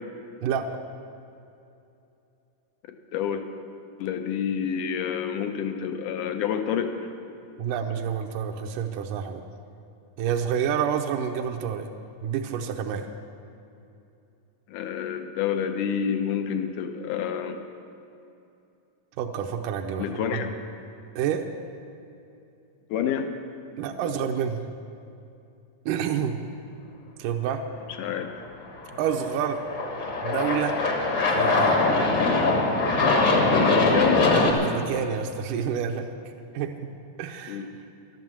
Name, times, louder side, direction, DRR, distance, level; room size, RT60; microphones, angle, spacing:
voice 1, 0.4-0.7 7.6-9.4 10.2-11.9 12.2-13.1 19.2-20.4 21.2-21.5 23.8-24.6 25.9-26.4 27.2-27.7 29.0-29.6 30.2-30.8 31.3-31.8 34.5-36.1 36.5-36.9 37.2-37.7, right 8 dB, 75° right, 2 dB, 2.0 m, -28 dB
voice 2, 3.1-3.4 4.0-6.9 14.7-17.6 20.0-20.6 22.9-23.3 28.0-28.3 33.5-34.3 37.5-37.7, left 8 dB, 75° left, 6 dB, 2.0 m, -28 dB
Aircraft, 28.8-34.5, left 3 dB, 50° left, 1.3 m, -22 dB
11.5 x 10.5 x 7.5 m, 2.7 s
omnidirectional pair, 4.2 m